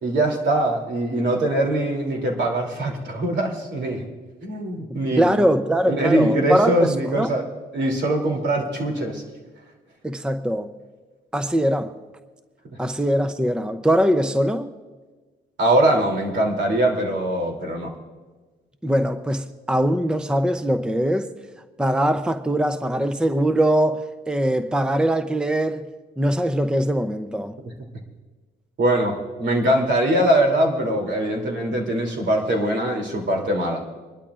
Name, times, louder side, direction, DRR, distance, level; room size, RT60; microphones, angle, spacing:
voice 1, 0.0-4.1 4.4-5.5 5.9-7.4 7.7-9.2 15.6-17.9 28.8-33.9, right 1 dB, 65° right, 3.0 m, -22 dB
voice 2, 5.2-7.3 10.0-10.7 11.3-11.9 12.8-14.7 18.8-21.4 21.8-25.9 26.2-27.6, equal, 5° right, 0.6 m, -22 dB
26.0 x 12.0 x 2.5 m
cardioid pair, 90°, 20 cm